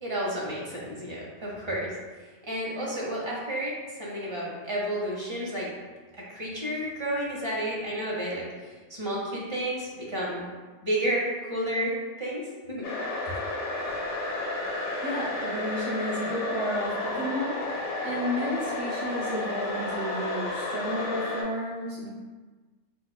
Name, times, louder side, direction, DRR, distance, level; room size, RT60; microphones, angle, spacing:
voice 1, 0.0-1.9 2.4-3.7 4.0-5.7 6.1-10.5 10.8-12.9, right 1 dB, 30° right, -5 dB, 0.7 m, -31 dB
sound 1, 12.8-21.4, left 2 dB, 80° left, 1.0 m, -32 dB
voice 2, 15.0-22.1, equal, 70° right, -7 dB, 1.4 m, -32 dB
4.6 x 2.3 x 2.2 m, 1.3 s
omnidirectional pair, 1.2 m